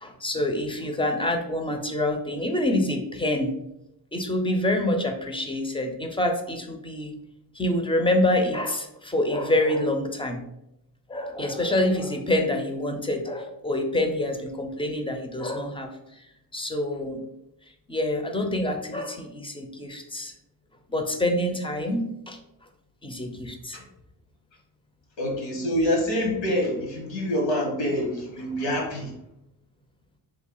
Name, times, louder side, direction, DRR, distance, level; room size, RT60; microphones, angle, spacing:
voice 1, 0.0-3.6 4.1-7.1 7.5-10.4 11.1-15.9 16.5-17.2 17.9-20.3 20.9-22.4 23.0-23.8, left 1 dB, 15° left, 4 dB, 0.4 m, -26 dB
voice 2, 25.2-29.1, equal, 90° left, 0 dB, 1.2 m, -26 dB
3.1 x 2.3 x 3.7 m, 0.84 s
cardioid pair, 90°, 44 cm